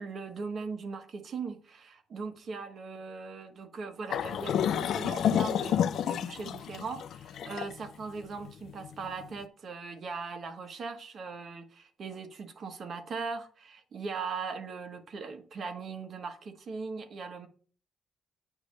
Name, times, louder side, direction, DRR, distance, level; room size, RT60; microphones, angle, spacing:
voice 1, 0.0-17.5, right 4 dB, 50° right, 1.3 m, -39 dB
sound 1, 4.1-9.3, left 9 dB, 70° left, 0.4 m, -30 dB
8.8 x 3.2 x 6.4 m
cardioid pair, 90°, 0 cm